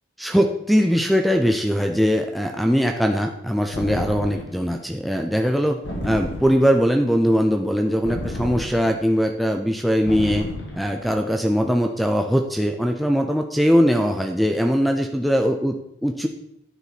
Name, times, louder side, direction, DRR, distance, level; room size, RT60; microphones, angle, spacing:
voice 1, 0.2-10.5 10.7-16.3, equal, ahead, 4 dB, 0.4 m, -21 dB
sound 1, 3.7-4.6 5.8-6.8 8.0-9.1 10.1-10.9, left 1 dB, 75° left, 1.7 m, -32 dB
9.8 x 4.6 x 4.0 m, 0.81 s
head